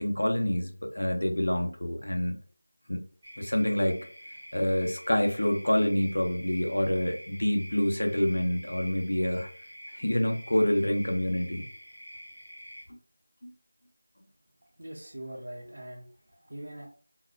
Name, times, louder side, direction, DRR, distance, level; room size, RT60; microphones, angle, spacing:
voice 1, 0.0-2.4 2.9-3.0 3.4-4.0 4.5-9.5 9.9-11.7 12.9-13.0 13.4-13.5, left 1 dB, 70° left, 3 dB, 0.8 m, -27 dB
sound 1, 3.2-12.9, equal, 15° right, 0.9 m, -47 dB
voice 2, 14.8-16.9, right 1 dB, 45° right, -3 dB, 0.7 m, -42 dB
3.8 x 2.2 x 2.7 m, 0.43 s
figure-of-eight pair, 180°, 0 cm